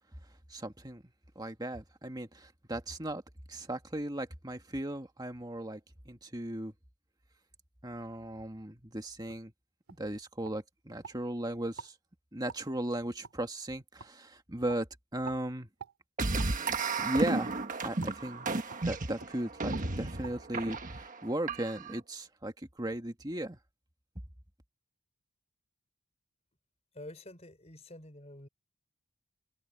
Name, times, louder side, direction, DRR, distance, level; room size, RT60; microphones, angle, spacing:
voice 1, 0.5-1.0 1.4-3.2 3.5-5.8 6.1-6.7 7.8-9.5 10.0-11.9 12.3-15.7 17.0-17.5 17.8-18.5 18.8-23.6, right 1 dB, 20° right, 1.8 m, -36 dB
sound 1, 9.3-9.4 9.9-10.0 10.4-11.2 11.7-11.9 12.5-12.6 13.2-13.4 14.0-14.1 14.7-14.8 15.3-15.4 15.8-16.0 16.4-16.5 17.0-17.2 18.0-18.2 18.7-18.8 19.2-19.3 19.7-19.9 20.2-20.4 20.7-20.8, right 6 dB, 85° right, 2.1 m, -46 dB
sound 2, 16.2-22.0, right 3 dB, 35° right, 1.4 m, -33 dB
voice 2, 26.9-28.5, left 1 dB, 30° left, 4.8 m, -48 dB
head